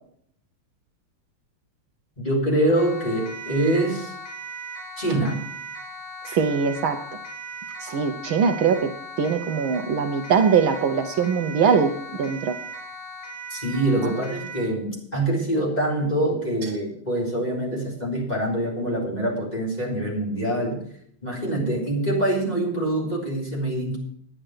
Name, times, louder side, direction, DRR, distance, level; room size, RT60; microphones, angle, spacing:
voice 1, 2.2-4.1 5.0-5.4 13.5-20.8 21.2-24.0, right 1 dB, 20° left, -3 dB, 4.0 m, -25 dB
Siren, 2.8-14.7, right 2 dB, 80° left, 3.9 m, -38 dB
voice 2, 6.2-7.0 7.8-8.9 9.2-12.6 14.0-14.1, right 6 dB, 70° right, 6 dB, 1.6 m, -22 dB
10.0 x 10.0 x 6.4 m, 0.66 s
omnidirectional pair, 2.4 m